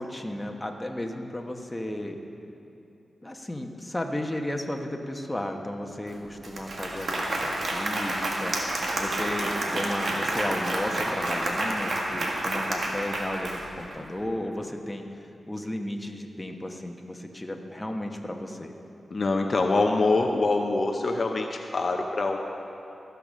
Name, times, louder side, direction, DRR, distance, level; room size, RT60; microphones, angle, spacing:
voice 1, 0.0-2.2 3.2-8.5 9.0-15.0 15.5-18.7, left 1 dB, 15° left, 3 dB, 1.1 m, -34 dB
Applause, 6.1-6.2 6.4-14.0, right 1 dB, 65° right, 1.6 m, -29 dB
voice 2, 19.1-22.4, left 3 dB, 50° left, 3 dB, 0.7 m, -24 dB
14.5 x 6.8 x 6.2 m, 2.8 s
cardioid pair, 65°, 0 cm